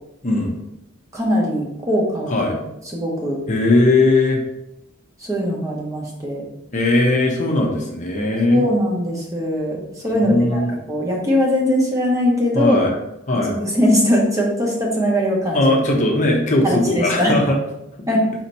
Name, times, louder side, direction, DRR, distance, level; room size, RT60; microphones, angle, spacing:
voice 1, 0.2-0.6 2.3-2.5 3.5-4.4 6.7-8.6 10.1-10.7 12.5-12.9 13.3-13.5 15.5-17.6, left 2 dB, 35° left, 0 dB, 0.7 m, -18 dB
voice 2, 1.1-2.5 2.9-3.4 5.2-6.5 8.5-10.6 10.9-12.8 13.5-15.8 16.6-17.3 18.1-18.3, equal, 15° right, -3 dB, 0.8 m, -20 dB
4.3 x 2.8 x 4.0 m, 0.86 s
head